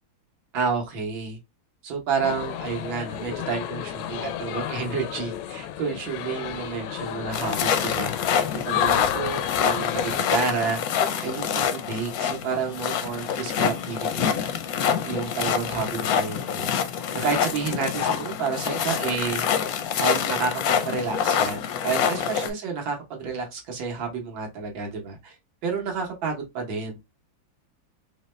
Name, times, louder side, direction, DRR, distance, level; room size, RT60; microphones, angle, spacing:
voice 1, 0.5-1.4 1.8-10.8 11.2-14.3 15.0-16.7 17.1-19.4 20.0-25.4 25.6-27.0, right 5 dB, 80° right, 1.9 m, -30 dB
sound 1, 2.2-10.2, left 10 dB, 90° left, 1.4 m, -31 dB
sound 2, 7.3-22.5, left 8 dB, 70° left, 0.9 m, -26 dB
4.8 x 2.2 x 3.1 m
omnidirectional pair, 2.1 m